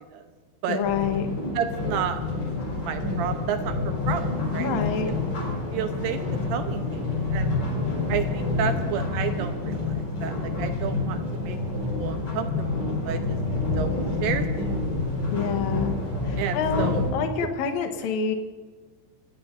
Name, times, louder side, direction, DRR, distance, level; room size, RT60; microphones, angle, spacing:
voice 1, 0.7-1.3 4.6-5.2 15.3-15.9 16.2-18.3, left 6 dB, 70° left, 5 dB, 1.8 m, -27 dB
sound 1, 0.8-17.1, left 3 dB, 35° left, 5.2 m, -28 dB
voice 2, 1.5-2.2 2.8-4.8 5.1-5.2 5.7-6.2 6.5-7.6 8.1-13.4 13.8-13.9 14.2-14.7 16.4-17.0 17.4-17.5, right 8 dB, 75° right, 7 dB, 2.4 m, -31 dB
26.5 x 16.5 x 2.6 m, 1.4 s
omnidirectional pair, 4.8 m